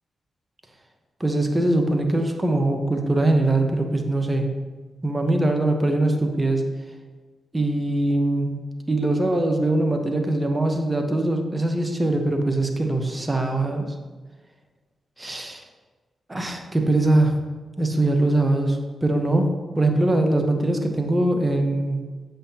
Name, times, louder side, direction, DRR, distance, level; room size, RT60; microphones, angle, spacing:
voice 1, 1.2-4.5 5.0-6.7 7.5-8.6 8.9-13.8 15.2-15.6 16.3-17.4 17.8-19.5 19.8-22.0, right 2 dB, 25° right, 4 dB, 1.0 m, -22 dB
8.0 x 5.6 x 2.9 m, 1.3 s
supercardioid pair, 50°, 0 cm